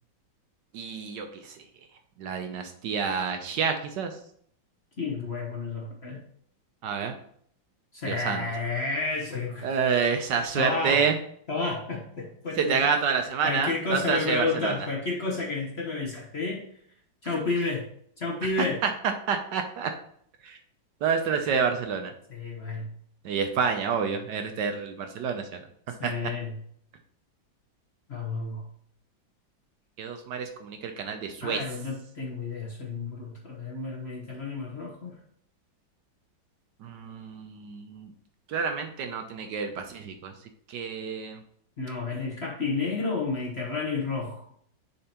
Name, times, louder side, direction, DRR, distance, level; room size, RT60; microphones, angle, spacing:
voice 1, 0.7-1.6 2.2-4.2 6.8-7.1 8.0-8.4 9.6-11.2 12.6-14.7 18.4-18.9 19.3-19.9 20.4-20.6 21.0-22.1 23.2-25.6 26.0-26.1 30.0-31.6 36.8-38.1 38.5-40.3 40.7-41.4, right 6 dB, 70° right, 5 dB, 1.2 m, -28 dB
voice 2, 5.0-6.2 7.9-9.7 10.5-11.0 11.5-12.9 13.4-16.6 17.2-17.8 18.2-18.8 22.3-22.9 26.0-26.6 28.1-28.6 31.4-35.2 41.8-44.4, left 3 dB, 40° left, -2 dB, 1.0 m, -31 dB
10.5 x 4.3 x 2.9 m, 0.65 s
omnidirectional pair, 2.1 m